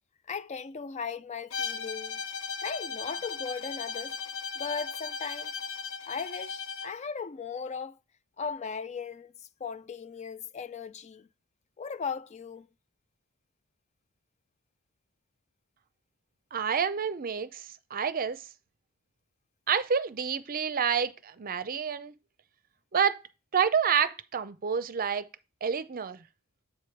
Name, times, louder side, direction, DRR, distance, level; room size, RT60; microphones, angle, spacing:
voice 1, 0.3-2.2 2.6-4.2 4.6-5.5 6.0-8.0 8.4-11.3 11.8-12.7, left 5 dB, 30° left, 0.4 m, -37 dB
Bowed string instrument, 1.5-7.0, left 5 dB, 85° left, 1.0 m, -37 dB
voice 2, 16.5-18.5 19.7-22.1 22.9-23.2 23.5-25.3 25.6-26.2, right 7 dB, 40° right, 0.6 m, -28 dB
7.6 x 5.0 x 4.5 m
head